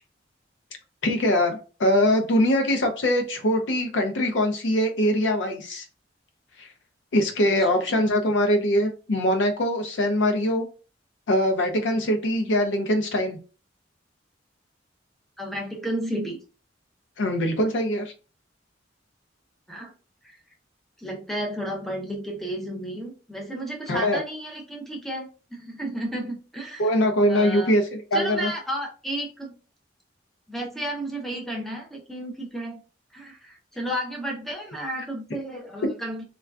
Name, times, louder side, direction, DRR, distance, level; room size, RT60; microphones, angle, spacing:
voice 1, 1.0-5.9 6.6-6.7 7.1-10.7 11.3-13.4 17.2-18.1 23.9-24.2 26.8-28.5, equal, 70° left, 5 dB, 0.5 m, -22 dB
voice 2, 7.4-8.1 15.4-16.4 19.7-19.9 20.2-20.4 21.0-26.9 27.3-27.7 28.1-29.5 30.5-32.8 33.1-36.2, right 1 dB, ahead, -1 dB, 0.6 m, -32 dB
3.5 x 2.3 x 2.3 m, 0.35 s
head